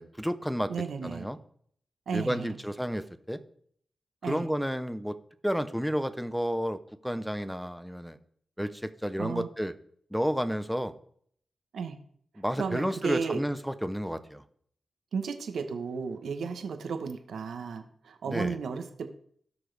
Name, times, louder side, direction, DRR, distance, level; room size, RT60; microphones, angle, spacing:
voice 1, 0.0-0.7 1.0-1.4 2.1-3.4 4.3-5.2 5.4-8.2 8.6-9.7 10.1-10.9 12.4-14.4 18.3-18.6, equal, ahead, 11 dB, 0.8 m, -31 dB
voice 2, 0.7-1.3 2.1-2.5 4.2-4.4 9.2-9.5 11.7-11.9 12.6-13.4 15.1-19.1, right 5 dB, 85° right, 7 dB, 1.1 m, -34 dB
17.5 x 6.1 x 3.4 m, 0.62 s
cardioid pair, 85°, 0 cm